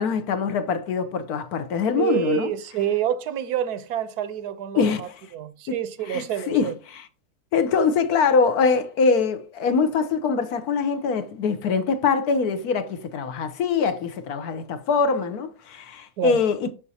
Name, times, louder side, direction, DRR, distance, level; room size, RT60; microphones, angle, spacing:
voice 1, 0.0-2.5 4.8-5.1 5.7-5.8 6.1-7.1 7.5-16.7, left 5 dB, 70° left, 1.2 m, -23 dB
voice 2, 2.0-6.7 16.2-16.4, right 10 dB, 75° right, 1.2 m, -28 dB
7.2 x 6.5 x 2.8 m
omnidirectional pair, 1.7 m